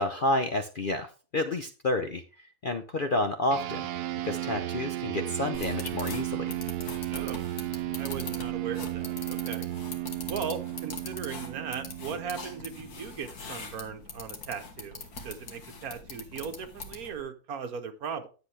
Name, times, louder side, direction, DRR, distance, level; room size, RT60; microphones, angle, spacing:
voice 1, 0.0-3.9 4.2-6.5, left 2 dB, 50° left, 7 dB, 0.6 m, -30 dB
sound 1, 3.5-13.2, right 14 dB, 85° right, 1.2 m, -34 dB
sound 2, 5.5-17.2, left 4 dB, 75° left, 2.0 m, -43 dB
voice 2, 7.1-7.5 7.9-9.7 10.3-18.3, right 6 dB, 70° right, 8 dB, 1.5 m, -38 dB
10.0 x 7.8 x 3.3 m, 0.35 s
omnidirectional pair, 1.6 m